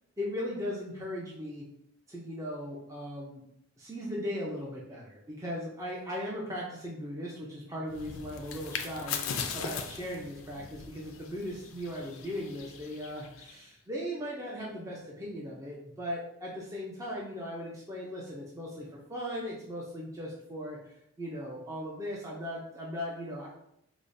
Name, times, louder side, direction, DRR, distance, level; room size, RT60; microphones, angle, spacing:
voice 1, 0.2-1.7 2.1-3.4 3.8-23.5, equal, 15° right, -4 dB, 0.4 m, -38 dB
sound 1, 7.9-13.6, left 6 dB, 65° left, 0.4 m, -39 dB
4.8 x 2.0 x 2.6 m, 0.77 s
head